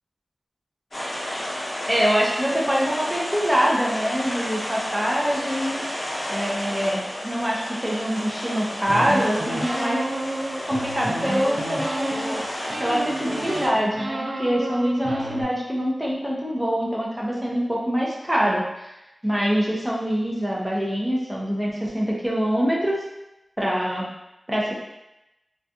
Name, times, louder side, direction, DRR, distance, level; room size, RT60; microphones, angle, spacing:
sound 1, 0.9-13.7, left 1 dB, 40° left, 0.8 m, -32 dB
voice 1, 1.9-5.8 6.3-10.1 10.6-12.4 12.8-18.9 19.2-23.0 23.6-24.1 24.5-24.7, equal, 15° right, -4 dB, 0.6 m, -24 dB
sound 2, 8.9-12.4 12.7-15.4, right 1 dB, 80° right, 0.4 m, -30 dB
2.3 x 2.2 x 2.7 m, 0.93 s
wide cardioid pair, 80°, 0 cm